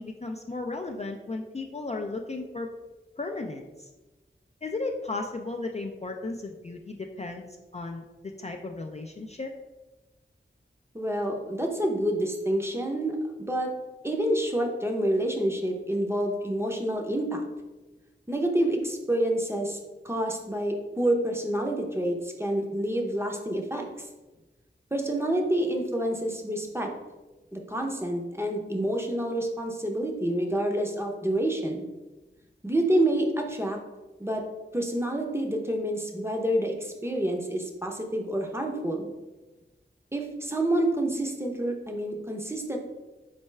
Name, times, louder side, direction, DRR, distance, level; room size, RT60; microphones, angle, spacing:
voice 1, 0.0-2.7 3.2-3.9 4.6-7.5 7.7-9.5, left 3 dB, 30° left, 2 dB, 0.3 m, -35 dB
voice 2, 10.9-13.2 13.5-13.7 14.0-17.4 18.3-19.8 20.0-24.1 24.9-26.9 27.5-31.9 32.6-33.8 34.2-34.4 34.7-39.1 40.1-42.8, right 1 dB, 10° right, 2 dB, 0.6 m, -28 dB
4.4 x 3.3 x 3.2 m, 1.1 s
wide cardioid pair, 55°, 21 cm